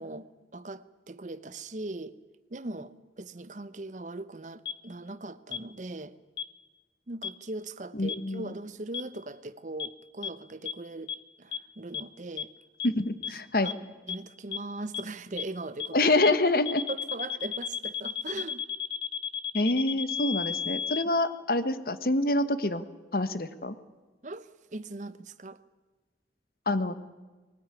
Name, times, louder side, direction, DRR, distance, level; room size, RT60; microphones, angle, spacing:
voice 1, 0.0-2.2 2.5-6.1 7.1-12.5 13.6-13.7 14.1-16.1 16.9-18.6 24.2-25.6, right 2 dB, 45° right, 0.8 m, -40 dB
sound 1, 4.7-4.8 5.5-5.6 6.4-6.5 7.2-7.3 8.1-8.2 8.9-9.0 9.8-9.9 10.2-10.3 10.7-10.8 11.1-11.2 11.5-11.6 11.9-12.0 12.4-12.5 12.8-12.9 13.2-13.3 13.7-13.8 14.1-14.2 14.5-14.6 14.9-15.0 15.4-15.5 15.8-15.9 16.2-16.3 16.7-21.0, left 8 dB, 75° left, 1.4 m, -32 dB
voice 2, 7.9-8.5 12.8-13.7 15.9-16.8 19.5-22.8 23.1-23.8 26.7-26.9, left 2 dB, 55° left, 1.2 m, -26 dB
19.5 x 19.0 x 9.8 m
head